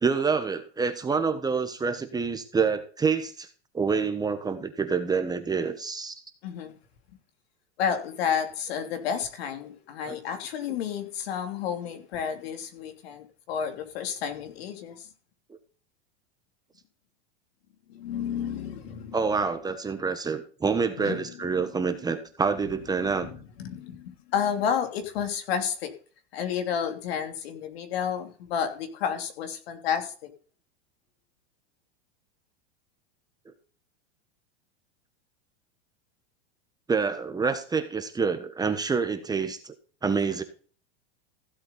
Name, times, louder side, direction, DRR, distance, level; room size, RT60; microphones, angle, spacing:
voice 1, 0.0-3.5 3.7-6.1 10.1-10.2 19.1-23.3 36.9-39.7 40.0-40.4, right 5 dB, 10° right, 8 dB, 1.3 m, -27 dB
voice 2, 6.4-6.7 7.8-15.1 17.9-19.2 21.0-21.7 22.9-25.9 26.3-30.3, left 8 dB, 70° left, 6 dB, 3.2 m, -31 dB
15.5 x 7.7 x 4.2 m, 0.39 s
supercardioid pair, 135°, 31 cm